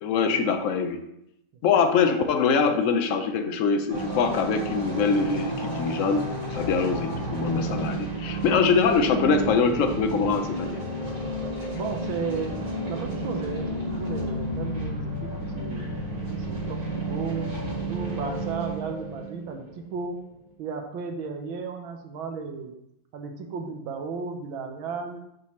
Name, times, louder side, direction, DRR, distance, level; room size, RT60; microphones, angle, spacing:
voice 1, 0.0-1.1 1.6-6.2 6.5-10.8, left 5 dB, 75° left, 6 dB, 0.7 m, -23 dB
sound 1, 3.9-20.2, right 1 dB, 50° right, 2.3 m, -31 dB
voice 2, 11.7-12.6 12.9-15.9 16.3-17.5 17.8-19.7 19.9-20.2 20.6-22.7 23.1-25.2, right 5 dB, 85° right, 4 dB, 1.7 m, -34 dB
7.4 x 3.1 x 5.7 m, 0.79 s
omnidirectional pair, 2.1 m